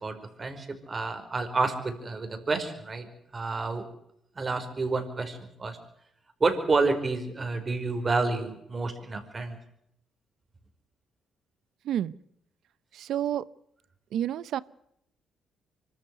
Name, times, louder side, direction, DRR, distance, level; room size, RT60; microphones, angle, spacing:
voice 1, 0.0-3.1 3.3-3.8 4.3-5.8 6.4-9.6, right 3 dB, 30° right, 7 dB, 5.1 m, -29 dB
voice 2, 13.1-13.4 14.1-14.6, right 11 dB, 75° right, 19 dB, 0.8 m, -28 dB
25.0 x 14.0 x 9.5 m, 0.76 s
cardioid pair, 90°, 0 cm